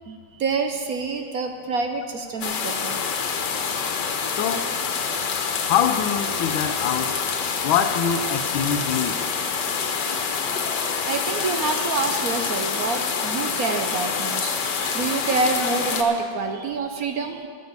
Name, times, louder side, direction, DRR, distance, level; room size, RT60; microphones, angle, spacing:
voice 1, 0.1-3.1 11.1-17.5, right 4 dB, 60° right, 1.0 m, -27 dB
sound 1, 2.4-16.0, left 6 dB, 65° left, 1.6 m, -26 dB
voice 2, 4.3-4.7 5.7-7.2 7.6-9.2, left 8 dB, 90° left, 1.6 m, -24 dB
11.5 x 9.6 x 8.1 m
omnidirectional pair, 2.1 m